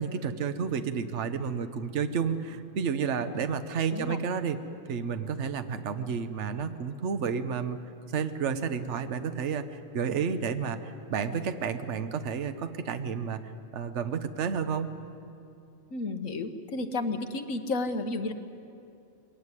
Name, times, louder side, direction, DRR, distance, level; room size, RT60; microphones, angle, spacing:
voice 1, 0.0-4.6 4.9-7.8 8.1-14.9, right 6 dB, 60° right, 9 dB, 1.2 m, -31 dB
voice 2, 15.9-18.3, left 3 dB, 75° left, 8 dB, 1.6 m, -32 dB
22.0 x 18.5 x 9.8 m, 2.7 s
omnidirectional pair, 1.4 m